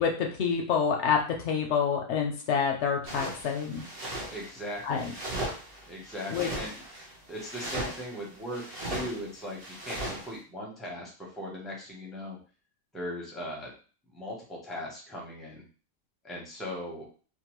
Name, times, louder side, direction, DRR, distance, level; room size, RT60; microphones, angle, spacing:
voice 1, 0.0-3.8 4.8-5.1 6.3-6.5, left 6 dB, 65° left, 2 dB, 0.7 m, -27 dB
sound 1, 3.0-10.3, right 1 dB, 35° right, 0.7 m, -38 dB
voice 2, 4.3-5.1 5.9-6.7 7.3-12.4 12.9-13.7 14.1-15.6 16.2-17.1, equal, ahead, -3 dB, 0.4 m, -39 dB
2.9 x 2.1 x 3.0 m, 0.38 s
omnidirectional pair, 1.5 m